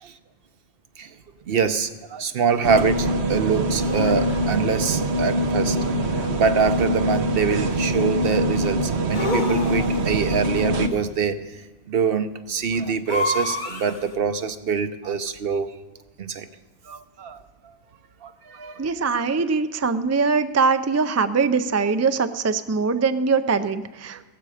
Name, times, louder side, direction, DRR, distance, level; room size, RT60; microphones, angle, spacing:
voice 1, 1.5-5.8 6.3-11.6 11.9-15.7 16.2-16.5 16.9-17.4 18.2-18.9 24.1-24.2, right 6 dB, 65° right, 10 dB, 1.0 m, -24 dB
sound 1, 2.6-10.9, right 1 dB, 85° right, 1.2 m, -23 dB
sound 2, 2.8-2.9 3.8-4.5 5.7-6.5 9.1-10.2 13.1-14.1, left 2 dB, 50° left, 1.4 m, -29 dB
voice 2, 18.8-24.2, right 5 dB, 25° right, 10 dB, 0.3 m, -22 dB
16.0 x 14.5 x 5.0 m, 1.1 s
omnidirectional pair, 1.1 m